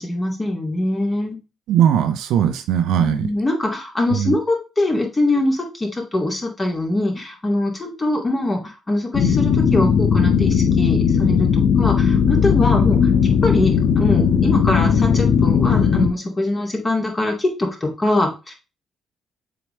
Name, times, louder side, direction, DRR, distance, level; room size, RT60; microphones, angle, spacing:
voice 1, 0.0-1.4 3.0-13.0 13.4-18.5, left 1 dB, 25° left, 1 dB, 2.5 m, -23 dB
voice 2, 1.7-3.3 4.1-4.3, right 9 dB, 65° right, 8 dB, 0.7 m, -19 dB
sound 1, 9.1-16.1, left 7 dB, 55° left, 0.7 m, -17 dB
7.4 x 4.0 x 3.3 m, 0.29 s
figure-of-eight pair, 45°, 0 cm